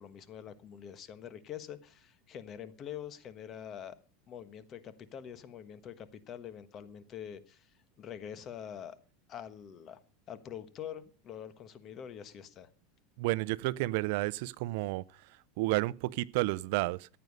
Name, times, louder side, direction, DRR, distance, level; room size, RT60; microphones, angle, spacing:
voice 1, 0.0-3.9 4.3-9.0 9.3-10.0 10.3-12.7, left 9 dB, 35° left, 1.3 m, -45 dB
voice 2, 13.2-15.0 15.6-17.1, right 20 dB, 65° right, 0.6 m, -31 dB
14.5 x 9.4 x 5.3 m
supercardioid pair, 140°, 0 cm